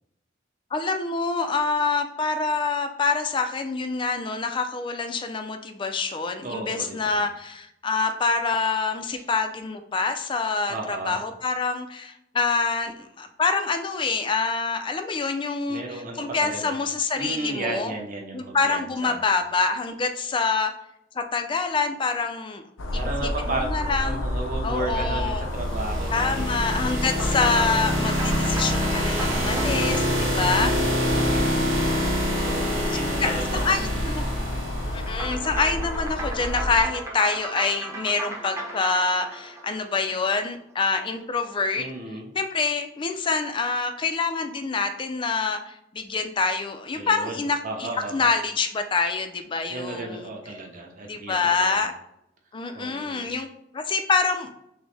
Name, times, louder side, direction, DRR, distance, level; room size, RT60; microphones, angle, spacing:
voice 1, 0.7-15.8 16.2-17.9 18.3-20.7 21.2-22.6 22.9-23.0 23.5-24.2 24.6-25.5 26.1-30.8 32.9-34.2 34.9-41.9 42.4-50.3 51.0-51.9 52.5-53.5 53.7-54.5, left 4 dB, 25° left, 7 dB, 0.4 m, -26 dB
voice 2, 6.4-7.2 9.1-9.2 10.7-11.2 15.7-16.8 17.1-19.3 22.9-26.6 30.4-31.8 32.4-34.0 41.7-42.3 43.2-43.3 46.9-48.3 49.7-51.7 52.7-53.3, right 2 dB, 45° right, 0 dB, 0.8 m, -34 dB
sound 1, 22.8-36.8, left 1 dB, 85° left, 0.6 m, -30 dB
sound 2, 25.4-35.3, equal, 70° right, 1.2 m, -26 dB
sound 3, 27.1-31.7 35.1-40.5, right 1 dB, 15° right, 0.7 m, -36 dB
6.0 x 2.1 x 3.3 m, 0.82 s
head